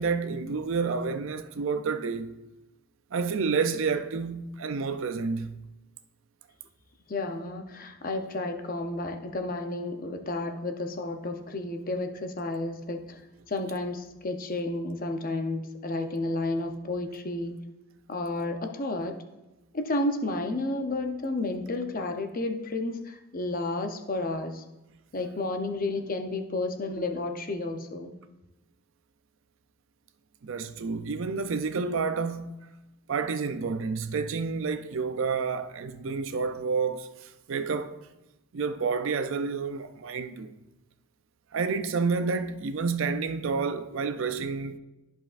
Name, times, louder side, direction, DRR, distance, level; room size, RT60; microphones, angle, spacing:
voice 1, 0.0-2.4 3.1-5.6 30.4-32.5 33.1-38.0 38.5-40.5 41.5-44.8, right 5 dB, 60° right, 0.4 m, -29 dB
voice 2, 7.1-13.2 13.5-17.6 18.1-19.2 19.7-24.6 25.1-28.1, left 2 dB, 40° left, 0.7 m, -31 dB
13.0 x 5.2 x 2.5 m
head